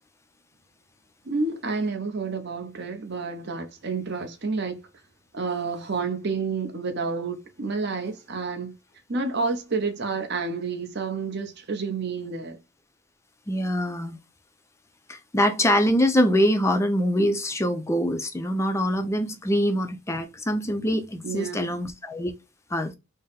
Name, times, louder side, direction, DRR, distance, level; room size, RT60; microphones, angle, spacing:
voice 1, 1.2-4.8 5.3-8.7 9.1-12.6 21.2-21.8, right 4 dB, 50° right, 0.7 m, -29 dB
voice 2, 13.5-14.2 15.1-22.3 22.7-22.9, equal, 15° left, 0.4 m, -24 dB
3.7 x 2.1 x 4.0 m
head